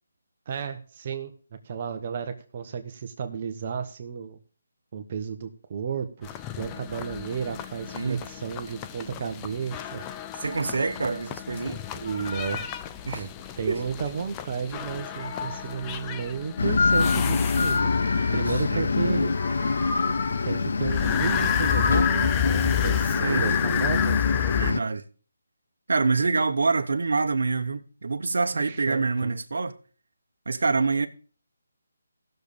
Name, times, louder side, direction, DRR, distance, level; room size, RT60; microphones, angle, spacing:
voice 1, 0.5-1.3 1.6-4.4 4.9-10.1 11.9-12.7 13.1-13.3 13.6-17.9 18.3-19.2 20.4-24.2 28.5-29.4, right 6 dB, 35° right, 1.0 m, -33 dB
sound 1, 6.2-18.1 20.8-24.7, left 11 dB, 15° left, 0.4 m, -31 dB
voice 2, 10.4-11.8 13.1-13.3 13.7-13.8 18.3-19.3 23.2-23.5 24.6-25.0 25.9-29.8 30.5-31.1, right 4 dB, 70° right, 1.0 m, -26 dB
Meow, 11.9-14.5 14.8-16.4 17.3-18.9 19.2-20.6 21.0-22.3, left 4 dB, 35° left, 5.0 m, -34 dB
sound 2, 16.6-24.8, left 4 dB, 60° left, 0.7 m, -25 dB
17.5 x 6.7 x 3.5 m
hypercardioid pair, 165°, 0 cm